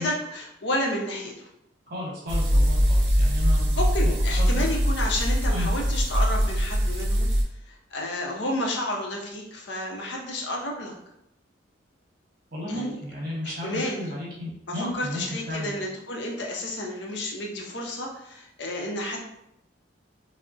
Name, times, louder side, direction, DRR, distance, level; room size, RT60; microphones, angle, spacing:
voice 1, 0.0-1.3 3.8-7.3 7.7-10.9 12.7-13.0 13.4-14.1 14.8-19.2, left 1 dB, 60° left, 0 dB, 0.6 m, -31 dB
voice 2, 1.9-3.7 4.4-4.5 5.5-5.7 12.5-15.7, left 1 dB, 50° right, -4 dB, 1.0 m, -33 dB
sound 1, 2.3-7.4, equal, 65° right, 0.6 m, -22 dB
3.7 x 2.0 x 2.4 m, 0.81 s
head